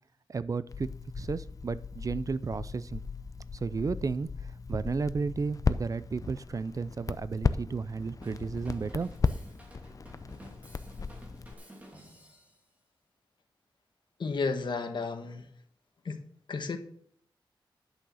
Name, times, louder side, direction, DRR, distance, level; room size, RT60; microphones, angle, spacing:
voice 1, 0.3-0.9 1.2-3.0 3.6-9.1, right 4 dB, 40° right, 16 dB, 0.4 m, -33 dB
Crackle, 0.7-11.5, left 4 dB, 40° left, 0.5 m, -35 dB
Drum kit / Drum, 8.2-12.6, right 1 dB, 15° right, 2.8 m, -52 dB
voice 2, 14.2-15.5 16.0-16.2 16.5-16.8, left 4 dB, 65° left, 7 dB, 1.3 m, -32 dB
11.0 x 6.2 x 6.5 m, 0.66 s
wide cardioid pair, 110°, 9 cm